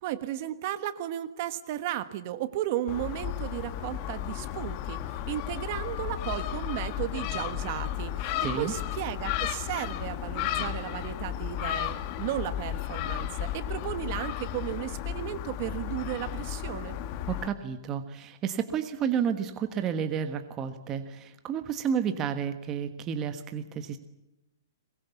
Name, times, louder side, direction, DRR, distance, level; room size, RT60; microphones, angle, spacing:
voice 1, 0.0-17.0, right 12 dB, 35° right, 11 dB, 1.4 m, -34 dB
Gull seagull, 2.9-17.5, left 11 dB, 30° left, 1.2 m, -34 dB
voice 2, 8.4-8.7 17.3-24.0, right 8 dB, 20° right, 8 dB, 1.4 m, -31 dB
22.5 x 22.5 x 8.4 m, 0.96 s
hypercardioid pair, 165°, 2 cm